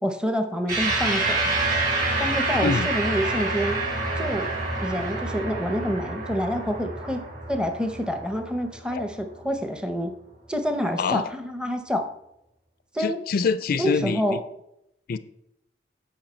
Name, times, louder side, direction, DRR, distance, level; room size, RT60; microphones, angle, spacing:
voice 1, 0.0-1.6 2.2-3.8 4.2-4.5 4.8-10.1 10.5-12.1 12.9-13.2 13.8-14.4, equal, 5° right, 7 dB, 0.6 m, -27 dB
sound 1, 0.7-9.4, right 2 dB, 50° right, 3.1 m, -27 dB
voice 2, 13.0-14.4 15.1-15.2, left 5 dB, 55° left, 14 dB, 0.4 m, -25 dB
8.8 x 5.6 x 4.3 m, 0.81 s
head